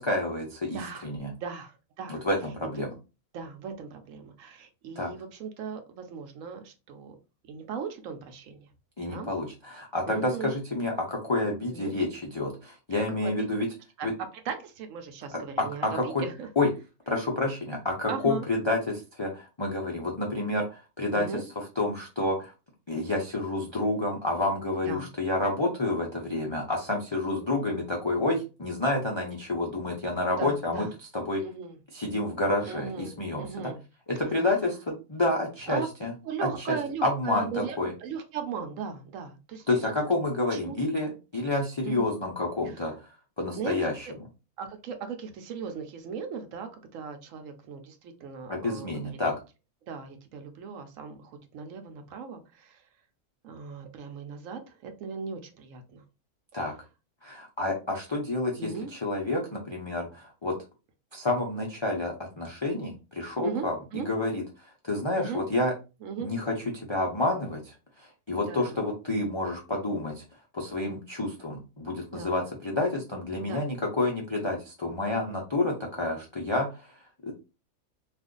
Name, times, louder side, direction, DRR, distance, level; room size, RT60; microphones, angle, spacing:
voice 1, 0.0-1.3 2.1-2.9 5.0-5.1 9.0-13.7 14.0-14.1 15.8-16.2 16.6-16.7 17.1-21.2 21.8-22.5 22.9-30.8 31.1-31.4 31.9-33.7 34.1-36.1 36.4-36.5 37.0-37.9 39.7-42.9 43.4-44.1 48.5-49.3 56.5-56.7 57.2-60.5 61.1-64.4 64.8-65.7 66.2-70.2 70.5-76.9 77.2-77.3, left 2 dB, 50° left, -1 dB, 0.3 m, -29 dB
voice 2, 0.7-1.1 1.4-2.2 3.3-7.2 7.5-8.7 9.1-9.3 10.0-10.5 11.7-11.9 13.2-13.3 14.0-14.1 14.4-16.5 18.1-18.5 21.1-21.4 24.8-25.1 30.4-30.9 31.4-31.8 32.7-33.8 35.7-35.9 36.2-39.7 40.5-40.8 41.8-42.2 43.6-44.1 44.6-49.2 49.9-52.8 53.4-56.0 58.6-58.9 63.4-64.1 65.2-65.4 66.0-66.3 68.5-68.8 72.1-72.3 73.4-73.6, right 6 dB, 70° right, 6 dB, 0.9 m, -37 dB
2.5 x 2.4 x 3.7 m, 0.29 s
omnidirectional pair, 1.5 m